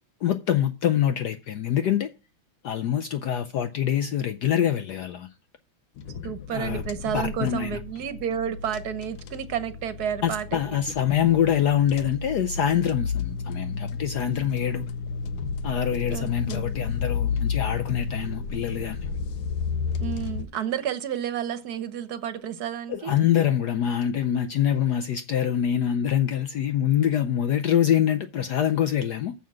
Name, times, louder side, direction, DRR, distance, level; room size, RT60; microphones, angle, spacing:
voice 1, 0.2-2.1 2.6-5.3 6.5-6.8 7.1-7.8 10.2-14.9 15.6-19.1 22.9-29.3, left 10 dB, 70° left, 1.0 m, -25 dB
sound 1, 6.0-20.4, left 5 dB, 90° left, 1.7 m, -32 dB
voice 2, 6.2-10.6 16.1-16.8 20.0-23.1, right 9 dB, 55° right, 1.3 m, -31 dB
7.2 x 5.7 x 7.3 m
omnidirectional pair, 2.3 m